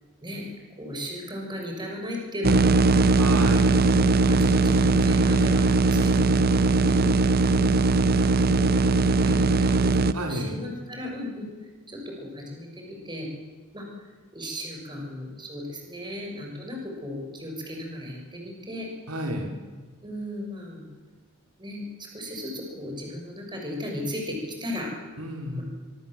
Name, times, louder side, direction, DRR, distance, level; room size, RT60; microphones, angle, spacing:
voice 1, 0.8-3.1 3.7-7.7 8.2-11.5 11.9-13.3 13.7-14.1 14.3-18.9 20.0-20.8 21.6-24.9 25.5-25.6, left 1 dB, 20° right, 0 dB, 6.4 m, -35 dB
sound 1, 2.4-10.1, right 3 dB, 45° right, 0.8 m, -20 dB
voice 2, 3.2-3.7 10.1-10.5 19.1-19.5 25.2-25.6, right 1 dB, 90° right, 2 dB, 4.7 m, -31 dB
24.5 x 24.0 x 7.7 m, 1.3 s
head